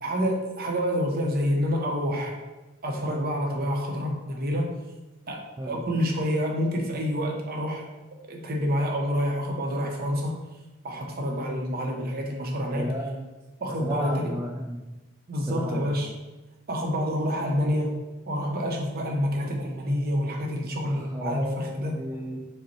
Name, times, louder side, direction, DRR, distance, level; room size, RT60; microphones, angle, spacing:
voice 1, 0.0-2.4 2.8-4.7 5.3-7.8 8.3-10.4 10.8-12.9 13.6-14.2 15.3-16.1 16.7-17.9 18.3-22.0, equal, 45° right, 1 dB, 0.7 m, -28 dB
voice 2, 12.7-13.2 13.8-14.8 15.5-15.9 20.8-22.5, equal, 15° right, -2 dB, 0.3 m, -33 dB
5.0 x 2.1 x 4.3 m, 1.1 s
head